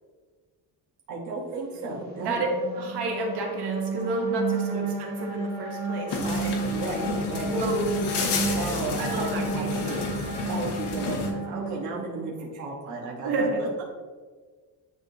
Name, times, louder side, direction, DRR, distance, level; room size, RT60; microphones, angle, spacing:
voice 1, 1.1-2.4 4.5-4.9 6.7-7.5 8.5-10.0 10.5-13.8, right 3 dB, 45° right, -3 dB, 1.1 m, -34 dB
sound 1, 1.8-12.3, right 4 dB, 25° right, 1.0 m, -32 dB
voice 2, 2.7-6.6 7.4-8.7 9.0-10.0 10.3-10.5 13.2-13.6, right 2 dB, 75° right, 0 dB, 1.4 m, -30 dB
sound 2, 6.1-11.3, left 5 dB, 90° left, 1.1 m, -31 dB
9.5 x 3.7 x 2.7 m, 1.5 s
cardioid pair, 165°, 40 cm